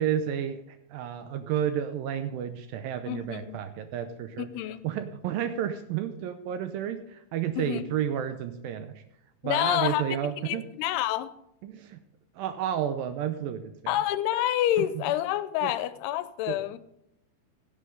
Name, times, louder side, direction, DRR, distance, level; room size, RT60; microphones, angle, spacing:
voice 1, 0.0-4.5 4.8-9.0 9.4-10.6 11.6-12.0 12.4-13.9 14.8-15.0 15.6-15.7 16.5-16.6, right 9 dB, 80° right, 2.2 m, -31 dB
voice 2, 3.1-3.6 4.4-4.9 7.6-7.9 9.4-10.2 10.5-11.3 13.9-16.8, left 13 dB, 90° left, 2.7 m, -28 dB
16.5 x 8.5 x 3.9 m
omnidirectional pair, 4.6 m